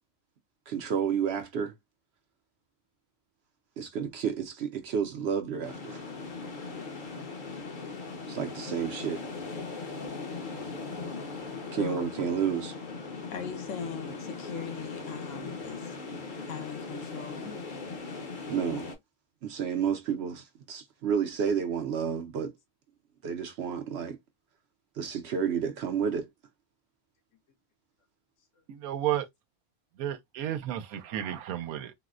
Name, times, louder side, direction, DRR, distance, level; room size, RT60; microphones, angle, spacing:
voice 1, 0.7-1.7 3.8-6.0 8.3-9.2 11.7-12.7 18.5-18.9 19.4-22.5 23.2-24.2 25.0-26.3, right 7 dB, 65° right, 0.7 m, -30 dB
sound 1, 5.6-19.0, left 4 dB, 40° left, 0.9 m, -39 dB
voice 2, 13.3-16.0 16.4-17.6, left 6 dB, 65° left, 1.0 m, -39 dB
voice 3, 28.7-29.3 30.0-31.9, right 11 dB, 90° right, 1.0 m, -32 dB
4.0 x 2.1 x 2.3 m
omnidirectional pair, 1.5 m